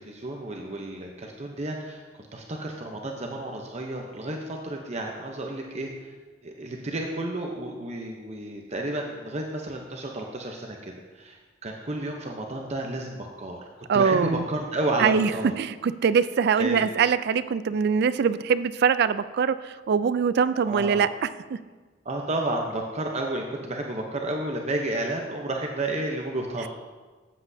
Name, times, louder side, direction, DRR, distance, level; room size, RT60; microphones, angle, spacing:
voice 1, 0.0-5.9 6.4-13.6 13.9-15.6 16.6-16.9 20.6-21.1 22.0-26.7, right 1 dB, 35° right, 1 dB, 0.7 m, -31 dB
voice 2, 13.9-14.4 15.0-15.3 15.6-21.3, right 6 dB, 60° right, 14 dB, 0.3 m, -23 dB
13.0 x 8.3 x 2.7 m, 1.3 s
head